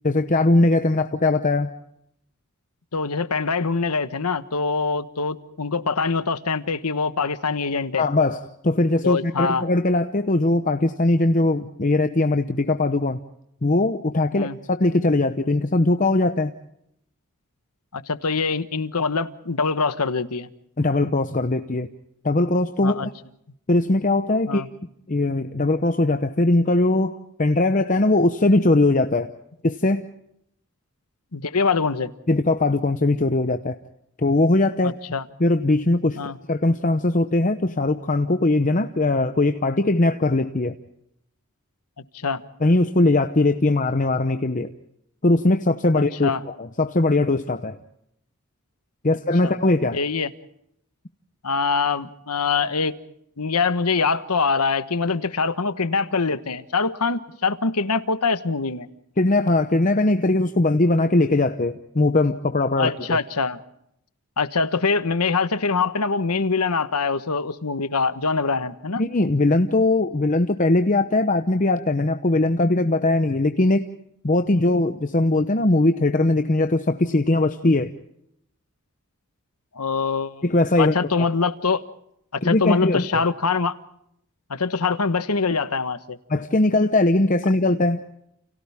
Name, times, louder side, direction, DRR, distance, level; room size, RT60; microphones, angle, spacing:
voice 1, 0.0-1.7 8.0-13.2 13.6-16.5 20.8-21.9 22.2-23.1 23.7-24.7 25.1-29.3 29.6-30.1 32.3-33.8 34.2-35.0 35.4-36.2 36.5-40.8 42.6-44.7 45.2-47.8 49.0-50.0 59.2-63.2 69.0-73.9 74.2-77.9 80.4-80.9 82.4-83.2 86.3-88.0, left 2 dB, 35° left, 8 dB, 0.9 m, -20 dB
voice 2, 2.9-8.0 9.0-9.6 14.3-14.6 17.9-20.5 22.8-23.1 24.5-24.7 31.3-32.1 34.8-35.2 36.1-36.4 42.1-42.4 45.9-46.4 49.4-49.6 49.9-50.3 51.4-52.9 53.4-58.9 62.8-63.6 64.4-69.0 79.7-80.4 80.8-81.8 82.3-83.7 84.5-86.2, left 4 dB, 90° left, 12 dB, 1.3 m, -24 dB
30.0 x 29.5 x 3.6 m, 0.75 s
head